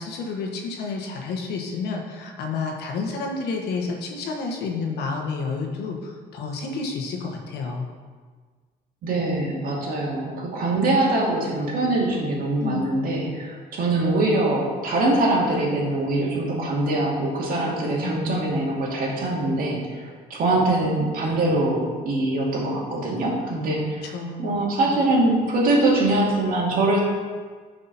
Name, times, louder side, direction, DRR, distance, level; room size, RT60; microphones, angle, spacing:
voice 1, 0.0-7.9 12.6-12.9 18.0-18.1 24.0-24.5 24.9-25.0, left 4 dB, 75° left, 1 dB, 1.4 m, -30 dB
voice 2, 9.0-24.0 24.4-27.0, right 2 dB, 55° right, -3 dB, 2.4 m, -23 dB
10.0 x 5.2 x 4.2 m, 1.5 s
cardioid pair, 110°, 17 cm